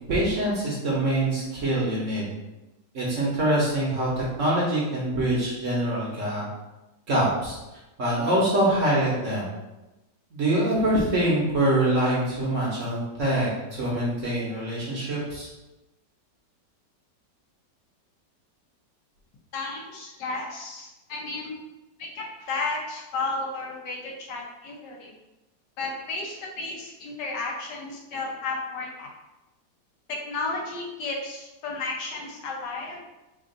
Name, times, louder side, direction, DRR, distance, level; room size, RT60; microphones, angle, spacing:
voice 1, 0.1-2.3 2.9-6.5 7.1-7.6 8.0-9.5 10.3-15.5, right 1 dB, 55° right, -5 dB, 1.0 m, -24 dB
voice 2, 19.5-21.5 22.0-25.1 25.8-29.1 30.1-33.0, left 3 dB, 75° left, -1 dB, 1.4 m, -33 dB
3.6 x 2.5 x 3.8 m, 1.0 s
omnidirectional pair, 1.9 m